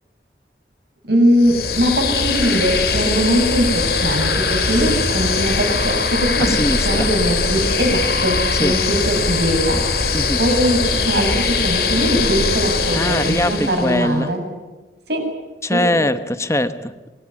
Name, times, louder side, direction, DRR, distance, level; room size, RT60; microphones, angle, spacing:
voice 1, 1.1-9.8 10.4-14.4 15.1-15.2 15.7-16.0, equal, 70° right, 4 dB, 7.4 m, -20 dB
sound 1, 1.3-14.1, left 4 dB, 60° left, 4.5 m, -21 dB
voice 2, 6.6-7.1 8.6-8.7 10.1-10.4 12.9-14.3 15.6-17.1, left 1 dB, 15° left, 11 dB, 1.1 m, -21 dB
25.5 x 21.5 x 9.9 m, 1.2 s
head